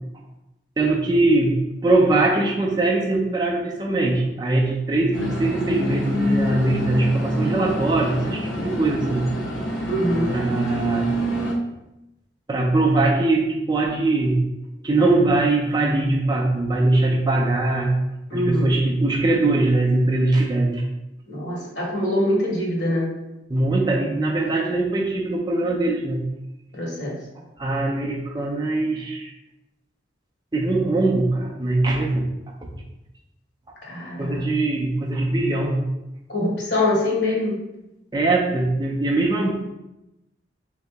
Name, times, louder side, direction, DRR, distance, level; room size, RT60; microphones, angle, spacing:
voice 1, 0.8-1.6 1.8-9.3 10.3-11.1 12.5-14.4 14.8-18.0 18.3-20.8 23.5-26.2 27.6-29.3 30.5-32.3 32.6-32.8 34.2-35.8 38.1-39.6, right 2 dB, 20° right, -1 dB, 0.4 m, -21 dB
sound 1, 5.1-11.6, equal, 90° left, 0.7 m, -26 dB
voice 2, 9.9-10.3 18.3-18.7 21.3-23.1 26.7-27.1 33.8-34.5 36.3-37.5, left 1 dB, 65° left, -4 dB, 1.4 m, -24 dB
3.9 x 2.8 x 3.4 m, 0.92 s
head